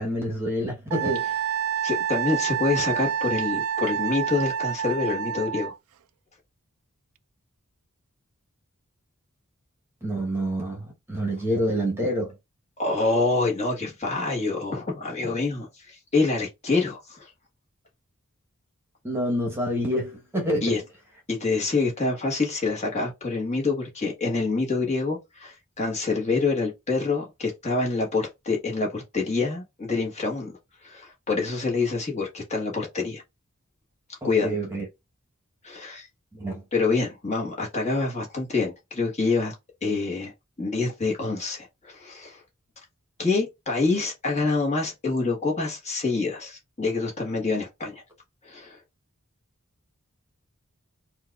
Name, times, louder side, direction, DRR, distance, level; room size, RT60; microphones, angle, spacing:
voice 1, 0.0-1.4 10.0-12.3 19.0-20.8 34.2-34.8 36.3-36.6, equal, 10° right, 1.0 m, -27 dB
Wind instrument woodwind instrument, 0.9-5.8, right 9 dB, 75° right, 0.4 m, -28 dB
voice 2, 1.8-5.7 12.8-17.3 20.6-20.8 21.3-30.5 30.8-33.2 34.2-34.6 35.6-36.1 36.7-39.5 39.8-40.3 40.6-42.4 43.2-48.0 48.4-48.8, left 3 dB, 30° left, 1.2 m, -26 dB
4.4 x 2.3 x 2.3 m
head